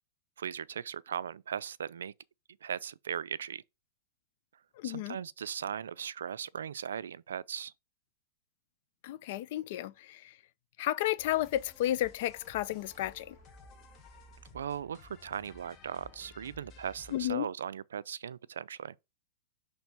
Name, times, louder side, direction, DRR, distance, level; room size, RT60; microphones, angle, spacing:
voice 1, 0.4-2.1 2.6-3.6 4.8-7.7 14.5-19.0, right 8 dB, 80° right, 0.3 m, -38 dB
voice 2, 4.8-5.2 9.0-10.3 10.8-13.4 17.1-17.5, left 14 dB, 55° left, 0.5 m, -32 dB
sound 1, 11.2-17.3, left 3 dB, 30° left, 1.7 m, -55 dB
6.0 x 3.3 x 5.4 m
hypercardioid pair, 120°, 0 cm